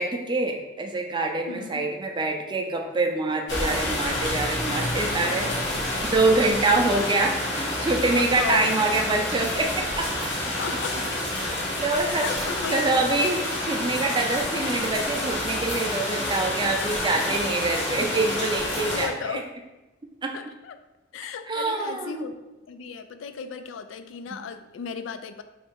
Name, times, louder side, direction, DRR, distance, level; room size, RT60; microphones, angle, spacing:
voice 1, 0.0-5.5 6.1-10.1 11.4-12.3 12.7-19.4 20.2-20.3 21.5-22.3, right 2 dB, 25° right, 2 dB, 0.5 m, -25 dB
voice 2, 1.5-1.9 6.6-7.1 8.2-8.9 10.6-11.0 11.4-12.8 18.9-19.5 20.3-20.8 21.1-22.3 22.7-25.4, left 6 dB, 90° left, 10 dB, 0.3 m, -35 dB
sound 1, 3.5-19.1, left 1 dB, 70° left, 1.3 m, -28 dB
3.2 x 2.9 x 4.6 m, 1.1 s
head